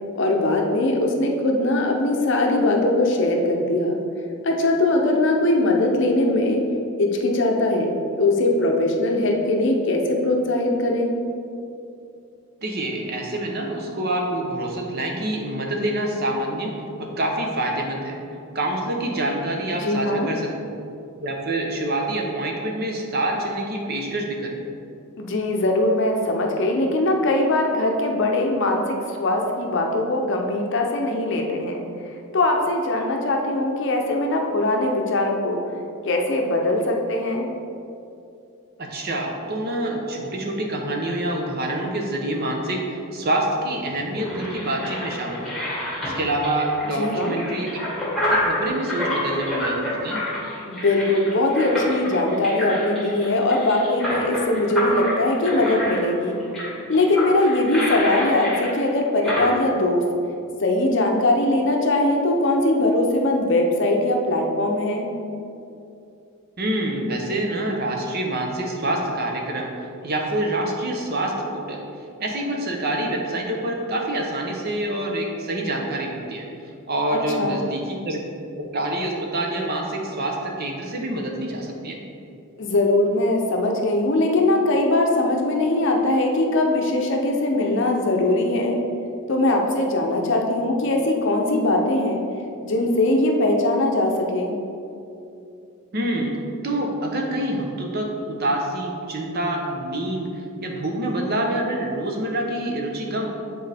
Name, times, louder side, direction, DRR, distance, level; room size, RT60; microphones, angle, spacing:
voice 1, 0.2-4.0 4.4-6.6 7.0-7.9 8.2-11.1 19.7-20.3 25.2-31.8 32.3-35.6 36.0-37.5 47.0-47.4 50.7-56.4 56.9-60.0 60.6-65.1 77.1-77.6 82.6-88.8 89.3-92.2 92.6-94.5, left 2 dB, 55° left, 1 dB, 0.6 m, -21 dB
voice 2, 12.6-18.2 18.5-20.5 21.2-24.6 38.8-45.6 46.0-47.9 48.3-50.2 66.6-69.7 70.0-71.8 72.2-76.5 76.9-78.2 78.6-82.0 95.9-96.4 96.6-100.3 100.6-103.3, right 1 dB, 45° right, 0 dB, 0.8 m, -26 dB
sound 1, 43.7-59.5, left 1 dB, ahead, 1.4 m, -28 dB
7.9 x 3.8 x 3.4 m, 2.6 s
head